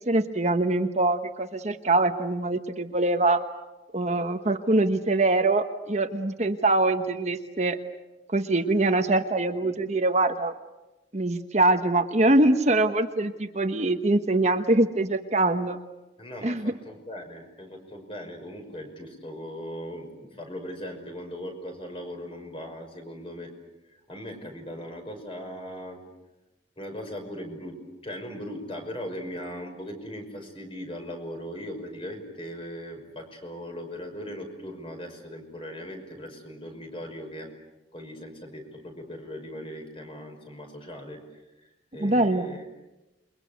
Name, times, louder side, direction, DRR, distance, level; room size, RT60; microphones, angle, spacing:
voice 1, 0.1-3.4 3.9-7.8 8.3-10.5 11.1-15.8 16.4-16.7 42.0-42.5, right 2 dB, 40° right, 7 dB, 1.2 m, -23 dB
voice 2, 16.2-23.5 23.8-26.0 26.8-37.5 37.9-42.6, equal, 30° left, 4 dB, 5.7 m, -39 dB
28.5 x 23.0 x 8.2 m, 1.0 s
head